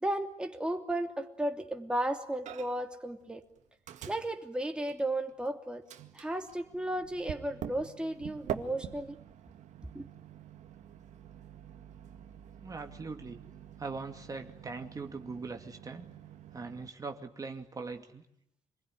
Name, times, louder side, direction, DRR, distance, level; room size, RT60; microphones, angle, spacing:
voice 1, 0.0-3.4 4.1-5.8 6.1-9.2 9.9-10.0, right 1 dB, 10° right, 4 dB, 2.8 m, -34 dB
Microwave oven, 2.5-2.9 3.2-5.5 5.9-16.9, right 10 dB, 75° right, 2.0 m, -46 dB
voice 2, 12.6-13.4 13.8-16.1 16.5-18.3, right 4 dB, 30° right, 4 dB, 2.4 m, -41 dB
27.5 x 21.0 x 10.0 m, 0.77 s
cardioid pair, 120°, 12 cm